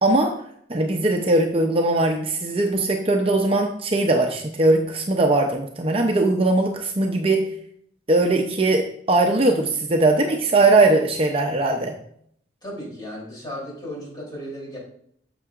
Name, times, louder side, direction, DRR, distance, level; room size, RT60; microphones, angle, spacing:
voice 1, 0.0-0.3 0.7-7.5 8.1-11.9, right 2 dB, 35° right, 3 dB, 0.6 m, -20 dB
voice 2, 12.6-14.8, equal, 25° left, -5 dB, 3.2 m, -35 dB
8.0 x 6.8 x 2.5 m, 0.66 s
head